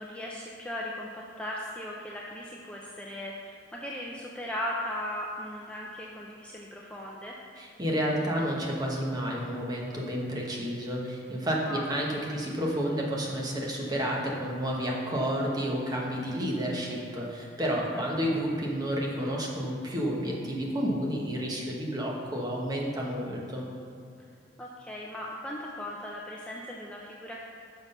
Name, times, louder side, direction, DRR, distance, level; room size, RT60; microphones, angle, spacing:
voice 1, 0.0-7.4 11.6-11.9 17.9-18.0 18.3-18.4 24.6-27.4, left 1 dB, 5° left, -3 dB, 0.5 m, -38 dB
voice 2, 7.6-23.7, equal, 20° right, -3 dB, 1.1 m, -30 dB
6.1 x 5.9 x 5.4 m, 2.5 s
head